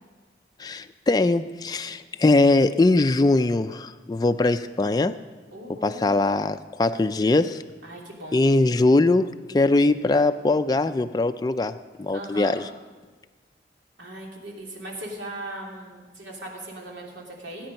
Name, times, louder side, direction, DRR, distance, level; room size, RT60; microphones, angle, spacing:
voice 1, 0.6-5.1 5.8-7.6 8.3-12.7, left 2 dB, 20° left, 9 dB, 0.3 m, -21 dB
voice 2, 5.5-6.2 7.8-8.4 12.1-12.6 14.0-17.7, right 1 dB, 90° right, -1 dB, 3.1 m, -38 dB
18.0 x 9.6 x 5.3 m, 1.3 s
head